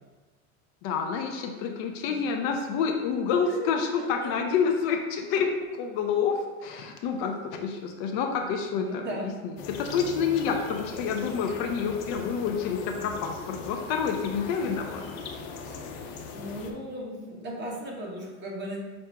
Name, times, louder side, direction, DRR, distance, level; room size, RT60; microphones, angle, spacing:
voice 1, 0.8-15.0, left 6 dB, 55° left, 4 dB, 0.6 m, -28 dB
voice 2, 4.0-4.3 7.1-7.3 7.5-7.6 8.7-9.3 15.6-15.9 16.3-18.8, equal, 25° right, -3 dB, 1.1 m, -37 dB
sound 1, 9.6-16.7, left 4 dB, 85° left, 0.8 m, -39 dB
5.7 x 2.6 x 3.4 m, 1.3 s
supercardioid pair, 135°, 40 cm